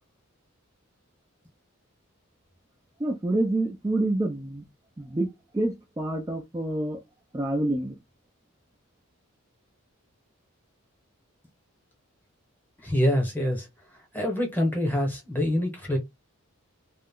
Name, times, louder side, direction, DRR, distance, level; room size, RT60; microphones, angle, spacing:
voice 1, 3.0-4.6 5.0-7.0 7.3-8.0, right 2 dB, 15° right, 0.3 m, -27 dB
voice 2, 12.8-13.7 14.1-16.0, left 1 dB, 10° left, 0.9 m, -25 dB
2.3 x 2.1 x 3.6 m
head